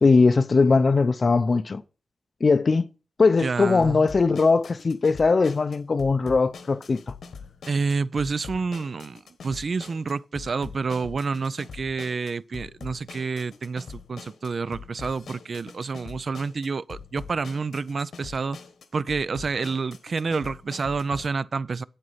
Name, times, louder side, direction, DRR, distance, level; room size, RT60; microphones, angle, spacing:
voice 1, 0.0-1.8 2.4-2.9 3.2-7.0, left 4 dB, 45° left, 0.5 m, -20 dB
voice 2, 3.4-4.1 7.7-18.6 18.9-21.8, right 4 dB, 55° right, 0.4 m, -29 dB
sound 1, 3.8-21.3, left 5 dB, 80° left, 1.2 m, -43 dB
8.3 x 7.9 x 5.6 m
cardioid pair, 80°, 0 cm